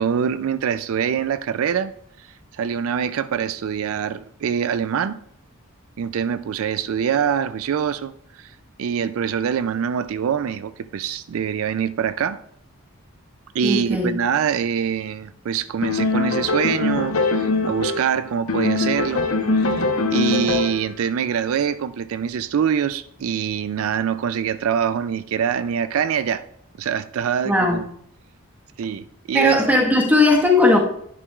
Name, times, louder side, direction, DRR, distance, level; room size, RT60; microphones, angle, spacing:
voice 1, 0.0-1.9 2.2-2.3 2.5-5.2 6.0-8.5 8.8-12.4 13.5-19.3 19.6-19.9 20.1-26.5 26.8-27.9 28.8-29.7, right 7 dB, 75° right, 0.3 m, -24 dB
voice 2, 13.6-14.1 27.4-27.8 29.3-30.8, left 2 dB, 10° right, 1.2 m, -17 dB
Piano Groove Quartal, 15.8-18.2 18.5-20.9, left 3 dB, 75° left, 0.8 m, -22 dB
11.0 x 10.0 x 2.3 m
head